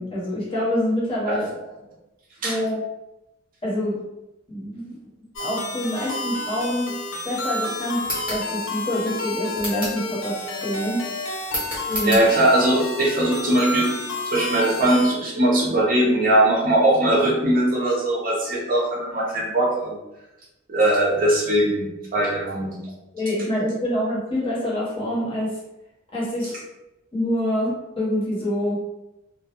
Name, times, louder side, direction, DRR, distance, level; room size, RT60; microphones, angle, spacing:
voice 1, 0.0-1.6 2.4-2.9 3.6-4.0 4.5-5.0 5.4-6.9 7.2-11.0 11.9-12.2 23.1-25.6 26.1-26.5 27.1-28.8, left 1 dB, 25° left, -7 dB, 0.8 m, -26 dB
sound 1, 5.4-15.1, left 2 dB, 70° left, 0.4 m, -30 dB
sound 2, 8.0-8.4 9.5-10.0 11.5-12.3, equal, 5° right, 0.8 m, -30 dB
voice 2, 12.1-13.9 14.3-20.0 20.7-22.8, right 1 dB, 45° right, -3 dB, 0.6 m, -20 dB
2.3 x 2.0 x 2.8 m, 0.96 s
head